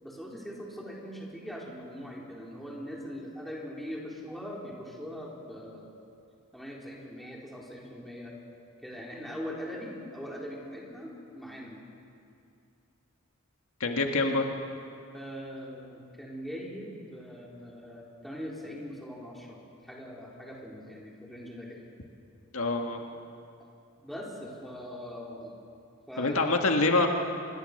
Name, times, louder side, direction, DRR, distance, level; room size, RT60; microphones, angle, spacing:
voice 1, 0.0-6.0 6.5-8.4 8.8-11.8 15.1-21.8 24.0-25.5 26.1-26.5, equal, ahead, -4 dB, 3.8 m, -41 dB
voice 2, 13.8-14.5 22.5-23.0 26.2-27.1, left 3 dB, 75° left, 3 dB, 1.8 m, -25 dB
25.5 x 22.0 x 6.6 m, 2.6 s
head